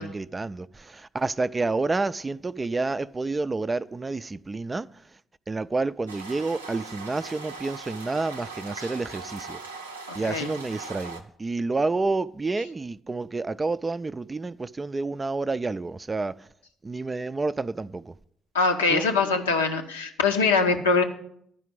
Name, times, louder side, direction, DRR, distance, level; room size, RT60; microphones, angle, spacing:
voice 1, 0.0-4.9 5.5-9.6 10.1-16.5 16.8-18.1 18.9-19.1, right 3 dB, 25° right, 0.3 m, -29 dB
sound 1, 6.1-11.2, right 4 dB, 90° right, 0.6 m, -40 dB
voice 2, 18.5-21.0, left 4 dB, 85° left, 0.7 m, -23 dB
10.5 x 5.0 x 7.7 m
figure-of-eight pair, 45°, 0 cm